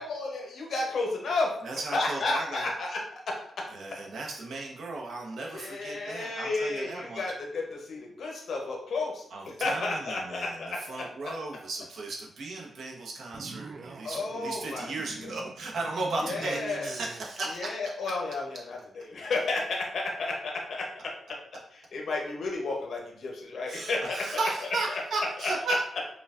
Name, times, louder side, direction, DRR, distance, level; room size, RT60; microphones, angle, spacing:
voice 1, 0.0-1.5 1.9-3.7 5.5-9.2 9.6-11.1 14.0-14.9 16.2-16.9 17.5-21.1 21.9-24.4 24.9-25.0 25.4-25.5, left 3 dB, 65° left, 0 dB, 0.7 m, -32 dB
voice 2, 1.6-2.7 3.7-7.2 9.3-17.8 23.7-25.8, right 3 dB, 75° right, -1 dB, 0.8 m, -35 dB
sound 1, 13.3-17.3, right 4 dB, 40° right, 0.3 m, -44 dB
5.0 x 2.3 x 2.4 m, 0.67 s
cardioid pair, 100°, 0 cm